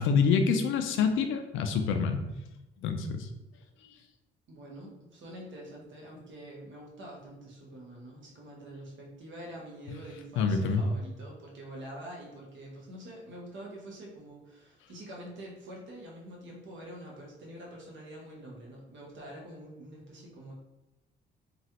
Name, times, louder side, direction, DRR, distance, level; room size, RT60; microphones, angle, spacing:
voice 1, 0.0-2.2 2.8-3.3 10.4-10.8, left 5 dB, 85° left, 6 dB, 0.4 m, -26 dB
voice 2, 4.5-20.5, right 1 dB, 70° right, -2 dB, 1.0 m, -46 dB
3.0 x 2.4 x 2.8 m, 0.95 s
cardioid pair, 90°, 20 cm